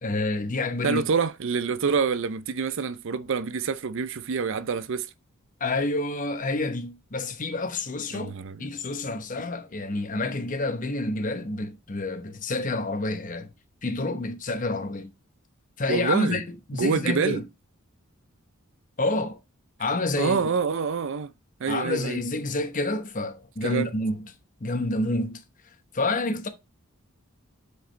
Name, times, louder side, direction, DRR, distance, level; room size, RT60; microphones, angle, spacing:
voice 1, 0.0-1.0 5.6-8.3 8.6-13.5 13.8-15.1 15.8-17.4 19.0-19.4 19.8-20.4 21.7-24.3 24.6-25.4 25.9-26.5, left 2 dB, 35° left, 1.0 m, -28 dB
voice 2, 0.8-5.1 8.1-8.7 15.9-16.4 16.7-17.4 20.2-21.3 21.6-22.2 23.6-23.9, right 5 dB, 60° right, 0.5 m, -27 dB
8.9 x 5.0 x 3.2 m
head